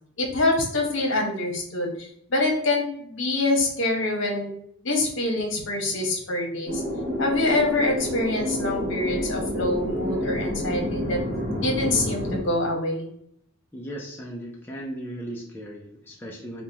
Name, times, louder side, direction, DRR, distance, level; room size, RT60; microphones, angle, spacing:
voice 1, 0.2-4.5 4.8-6.8 7.2-11.2 11.6-13.1, left 2 dB, 60° left, 1 dB, 1.0 m, -25 dB
sound 1, 6.7-12.4, left 1 dB, 45° right, 1.1 m, -29 dB
voice 2, 13.7-16.6, right 1 dB, 10° left, -3 dB, 0.4 m, -37 dB
5.0 x 2.2 x 2.8 m, 0.69 s
head